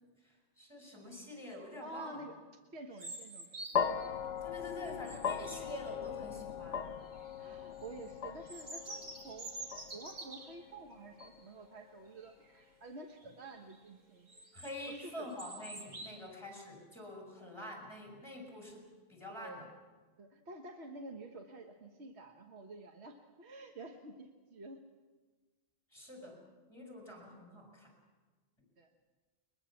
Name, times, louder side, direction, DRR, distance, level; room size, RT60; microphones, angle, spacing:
voice 1, 0.2-2.2 4.4-6.8 14.5-19.7 25.9-26.4 26.7-27.9, left 1 dB, 20° left, 1 dB, 5.6 m, -46 dB
voice 2, 1.8-2.4 2.7-3.5 7.4-9.5 9.9-14.3 14.9-15.3 19.3-19.7 20.2-24.8 28.8-28.9, right 2 dB, 60° right, 4 dB, 1.5 m, -49 dB
sound 1, 2.9-4.1 4.6-6.2 6.9-7.4 7.8-10.6 11.2-11.4 11.8-11.9 12.3-12.6 13.2-13.8 14.3-16.1, right 2 dB, 90° right, 2.7 m, -48 dB
sound 2, 3.7-12.1, left 7 dB, 70° left, 1.2 m, -40 dB
22.0 x 21.5 x 7.2 m, 1.4 s
omnidirectional pair, 1.3 m